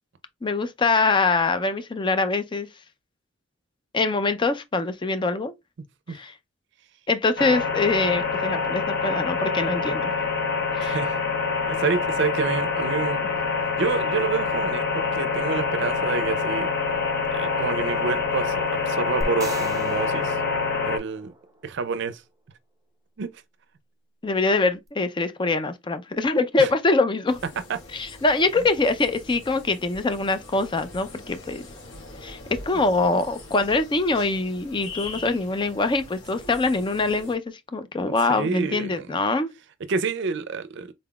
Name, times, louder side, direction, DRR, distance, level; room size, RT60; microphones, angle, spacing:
voice 1, 0.4-2.7 3.9-5.5 6.1-6.3 7.1-10.1 10.8-11.0 24.2-27.4 27.9-31.7 32.2-37.4 37.7-39.5, left 3 dB, 25° left, 0.4 m, -24 dB
sound 1, 7.4-21.0, left 4 dB, 55° left, 1.0 m, -26 dB
voice 2, 10.8-11.2 11.7-13.2 13.8-17.0 17.3-20.4 20.8-21.3 21.6-22.2 23.2-23.3 26.6-26.7 27.7-27.8 35.1-35.2 38.3-39.2 39.9-40.9, right 5 dB, 60° right, 0.5 m, -28 dB
sound 2, 19.2-21.6, right 1 dB, 15° right, 0.6 m, -36 dB
sound 3, 27.3-37.4, left 2 dB, 70° left, 1.9 m, -43 dB
3.8 x 3.8 x 2.3 m
head